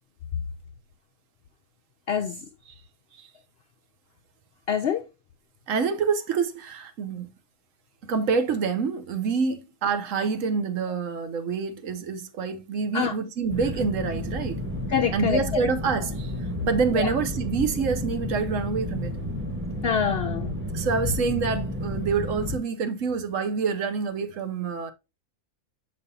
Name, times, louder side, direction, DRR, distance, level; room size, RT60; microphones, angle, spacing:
voice 1, 2.1-2.4 4.7-5.0 12.9-13.2 14.9-15.4 17.0-17.1 19.8-20.5, left 7 dB, 65° left, 0.6 m, -25 dB
voice 2, 5.7-7.3 8.1-14.6 15.1-16.3 16.6-19.1 20.7-24.9, right 5 dB, 65° right, 1.1 m, -27 dB
sound 1, 13.5-22.6, left 1 dB, 10° right, 1.1 m, -31 dB
6.8 x 5.3 x 2.7 m
omnidirectional pair, 1.5 m